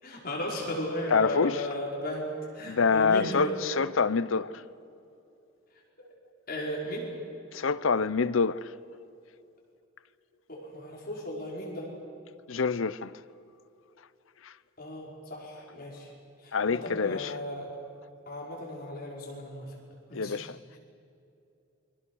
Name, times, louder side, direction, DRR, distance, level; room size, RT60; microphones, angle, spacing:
voice 1, 0.0-2.3 2.5-3.5 6.5-7.1 10.5-11.9 14.8-16.1 16.4-17.7 18.3-19.7 20.1-20.4, left 1 dB, 45° left, 5.3 m, -35 dB
voice 2, 1.1-1.6 2.6-4.5 7.5-8.6 12.5-13.1 16.5-17.3 20.1-20.6, left 5 dB, 70° left, 0.7 m, -26 dB
28.5 x 23.5 x 6.4 m
head